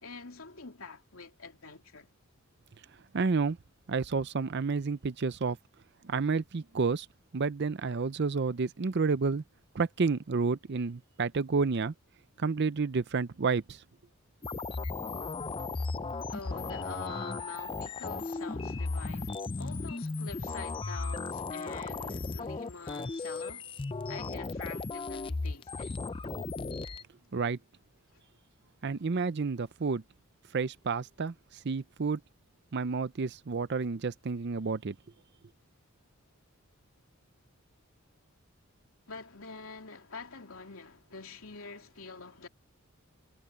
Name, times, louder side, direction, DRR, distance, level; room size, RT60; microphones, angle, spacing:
voice 1, 0.0-2.1 16.3-23.7 24.1-25.9 28.1-28.2 39.1-42.5, left 4 dB, 75° left, 2.9 m, -46 dB
voice 2, 3.1-3.6 3.9-5.6 6.1-7.1 7.3-9.4 9.7-11.9 12.4-13.8 27.3-27.6 28.8-30.0 30.5-31.3 31.6-32.2 32.7-35.0, right 4 dB, 50° right, 0.5 m, -30 dB
sound 1, 14.4-27.0, left 3 dB, 25° left, 0.4 m, -36 dB
head